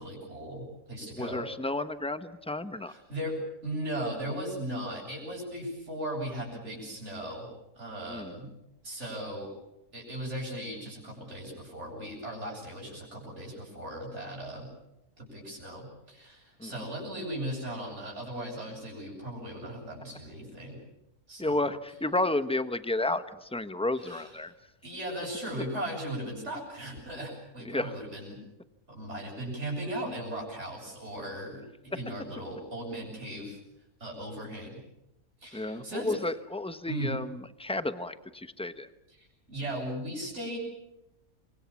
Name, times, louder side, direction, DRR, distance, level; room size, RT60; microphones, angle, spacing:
voice 1, 0.0-1.4 2.9-3.4 3.6-7.5 7.7-8.5 8.8-9.5 9.9-14.7 15.2-20.8 21.3-21.6 24.0-24.2 24.8-28.4 28.9-33.6 34.0-34.7 35.4-36.2 36.9-37.1 39.5-40.6, right 1 dB, 50° right, -2 dB, 8.2 m, -37 dB
voice 2, 1.1-2.9 8.0-8.3 16.6-16.9 21.4-24.5 27.6-27.9 35.5-38.9, left 2 dB, 5° left, 11 dB, 0.9 m, -32 dB
28.0 x 23.5 x 7.2 m, 0.88 s
omnidirectional pair, 1.5 m